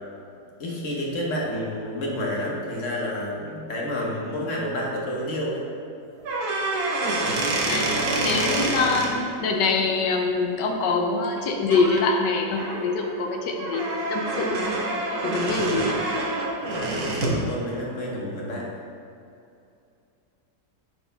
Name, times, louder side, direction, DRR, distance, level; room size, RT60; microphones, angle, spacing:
voice 1, 0.6-5.7 8.2-8.3 16.6-18.7, left 1 dB, 50° left, -3 dB, 1.3 m, -30 dB
sound 1, 6.2-9.1 11.2-11.4 11.7-12.0 12.5-17.4, right 2 dB, 70° right, 1.4 m, -27 dB
voice 2, 8.2-14.7 15.2-16.0, left 4 dB, 85° left, 2 dB, 1.4 m, -24 dB
8.8 x 4.5 x 3.4 m, 2.6 s
omnidirectional pair, 1.8 m